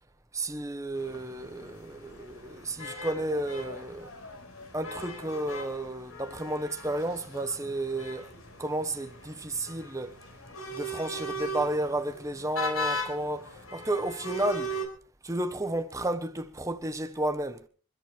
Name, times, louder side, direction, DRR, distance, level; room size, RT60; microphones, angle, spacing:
voice 1, 0.3-4.1 4.7-8.3 8.6-10.1 10.7-14.7 15.2-17.6, right 1 dB, 15° right, 1.1 m, -32 dB
sound 1, 0.9-14.9, equal, 70° left, 4.7 m, -39 dB
26.5 x 13.5 x 3.4 m
head